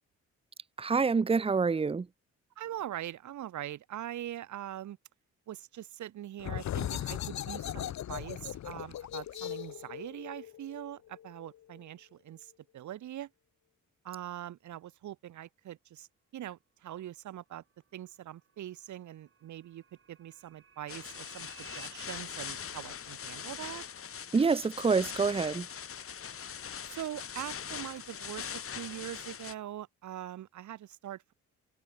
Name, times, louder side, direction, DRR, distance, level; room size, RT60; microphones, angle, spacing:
voice 1, 0.8-2.1 24.3-25.7, right 5 dB, 20° right, 0.8 m, -27 dB
voice 2, 2.6-5.0 5.5-13.3 14.0-16.1 16.3-17.6 17.9-23.8 26.8-31.3, right 12 dB, 70° right, 2.4 m, -42 dB
sound 1, 6.4-11.8, left 11 dB, 65° left, 1.7 m, -38 dB
sound 2, 17.7-21.9, right 6 dB, 45° right, 7.5 m, -58 dB
sound 3, 20.9-29.5, left 7 dB, 45° left, 2.4 m, -42 dB
cardioid pair, 90°, 30 cm